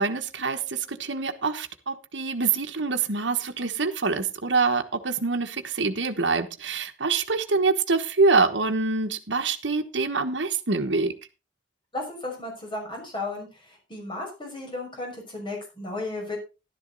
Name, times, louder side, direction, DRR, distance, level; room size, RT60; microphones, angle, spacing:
voice 1, 0.0-11.1, right 4 dB, 70° right, 1.3 m, -25 dB
voice 2, 11.9-16.4, left 2 dB, 25° left, 6.0 m, -34 dB
12.0 x 10.5 x 4.0 m
head